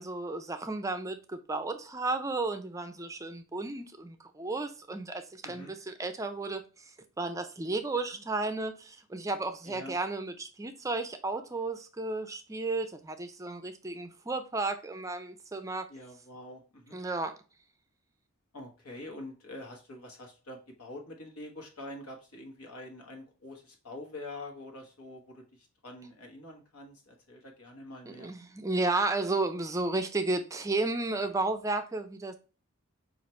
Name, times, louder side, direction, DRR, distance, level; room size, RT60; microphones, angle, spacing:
voice 1, 0.0-15.9 16.9-17.4 28.1-32.4, right 2 dB, 15° right, 0.3 m, -33 dB
voice 2, 9.6-10.0 15.9-17.0 18.5-28.3, left 1 dB, 90° left, 1.2 m, -45 dB
5.5 x 2.5 x 3.0 m
head